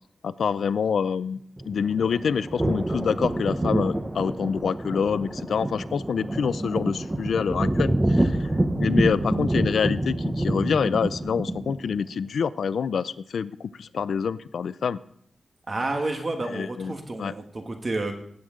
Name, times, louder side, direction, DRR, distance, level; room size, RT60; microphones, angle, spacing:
voice 1, 0.2-1.4 1.6-8.5 8.8-15.0 16.5-16.9 17.2-17.3, left 6 dB, 85° left, 17 dB, 0.4 m, -26 dB
sound 1, 1.6-12.0, right 1 dB, 15° right, 0.6 m, -27 dB
voice 2, 15.7-18.1, right 2 dB, 35° right, 4 dB, 1.3 m, -30 dB
17.5 x 7.8 x 3.7 m, 0.68 s
wide cardioid pair, 140°, 0 cm